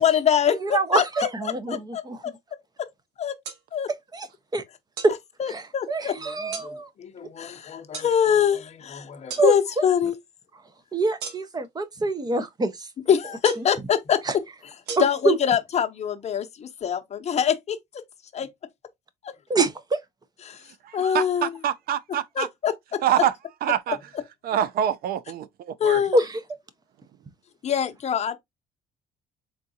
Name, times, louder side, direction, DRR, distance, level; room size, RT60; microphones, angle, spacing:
voice 1, 0.0-1.3 1.7-2.3 2.8-2.9 3.2-3.4 3.7-3.9 5.4-10.2 13.1-14.4 15.0-18.0 18.3-18.5 19.2-19.3 20.4-20.7 20.9-21.5 22.4-23.0 25.8-26.2 27.6-28.4, left 8 dB, 40° left, 0.7 m, -24 dB
voice 2, 0.6-2.2 4.1-4.3 4.5-4.6 5.0-5.1 5.5-5.6 5.9-6.9 9.4-9.5 10.9-12.7 14.3-14.4 15.0-15.4 19.5-20.0 26.1-26.3, right 2 dB, 25° right, 0.7 m, -24 dB
sound 1, 3.4-3.6 5.0-5.2 6.5-6.7 7.9-8.1 9.3-9.5 11.2-11.7 13.4-13.8 14.9-15.0, right 5 dB, 80° right, 1.1 m, -34 dB
voice 3, 20.8-22.5 23.0-23.3 23.6-24.0 24.4-26.0, right 10 dB, 60° right, 0.5 m, -26 dB
3.8 x 3.5 x 2.7 m
cardioid pair, 110°, 17 cm